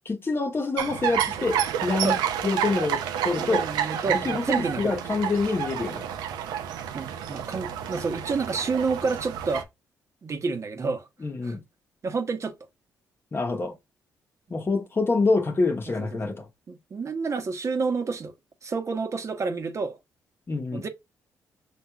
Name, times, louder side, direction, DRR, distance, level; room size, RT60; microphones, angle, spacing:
voice 1, 0.0-2.2 2.4-3.7 4.1-6.1 11.2-11.6 13.3-13.7 14.5-16.5 20.5-20.8, left 3 dB, 35° left, 1.1 m, -26 dB
sound 1, 0.8-9.6, right 9 dB, 85° right, 0.6 m, -29 dB
voice 2, 3.4-5.0 6.9-9.7 10.2-11.1 11.4-11.6 12.0-12.6 15.9-16.4 16.7-18.3 18.6-20.0 20.7-20.9, right 4 dB, 45° right, 1.0 m, -29 dB
5.8 x 3.1 x 2.3 m
supercardioid pair, 60°, 7 cm